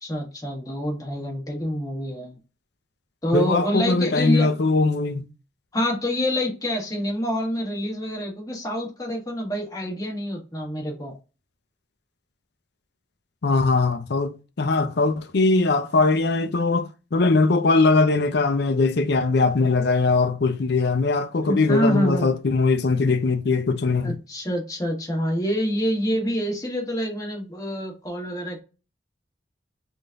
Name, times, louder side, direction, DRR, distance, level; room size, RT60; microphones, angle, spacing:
voice 1, 0.0-2.4 3.2-4.5 5.7-11.1 21.4-22.3 24.0-28.6, equal, 20° left, 1.4 m, -27 dB
voice 2, 3.3-5.3 13.4-24.2, left 3 dB, 60° left, 0.5 m, -21 dB
3.7 x 2.6 x 3.4 m
head